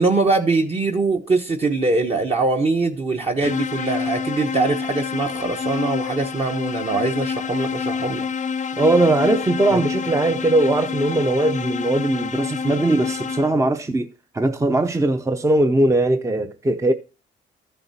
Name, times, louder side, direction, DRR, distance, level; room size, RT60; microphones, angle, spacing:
voice 1, 0.0-8.3 9.7-9.8, right 3 dB, 30° right, 1.1 m, -22 dB
sound 1, 3.4-13.8, left 6 dB, 35° left, 0.6 m, -27 dB
voice 2, 8.8-16.9, right 2 dB, 15° right, 0.7 m, -20 dB
14.0 x 6.9 x 2.8 m
cardioid pair, 90°, 20 cm